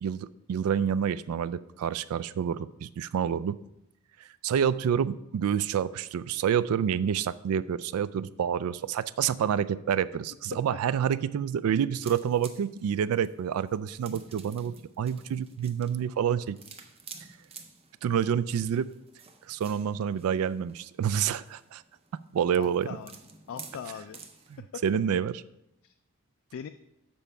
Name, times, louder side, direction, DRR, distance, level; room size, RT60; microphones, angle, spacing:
voice 1, 0.0-3.6 4.4-16.6 18.0-18.9 19.5-21.8 22.3-22.9 24.5-25.3, right 8 dB, 85° right, 18 dB, 0.3 m, -28 dB
sound 1, 12.0-24.6, right 4 dB, 30° right, 0.6 m, -51 dB
voice 2, 22.5-23.2 23.5-24.2 24.6-24.8 25.8-25.9 26.5-26.7, left 7 dB, 65° left, 9 dB, 0.3 m, -40 dB
7.1 x 4.4 x 5.5 m, 0.85 s
head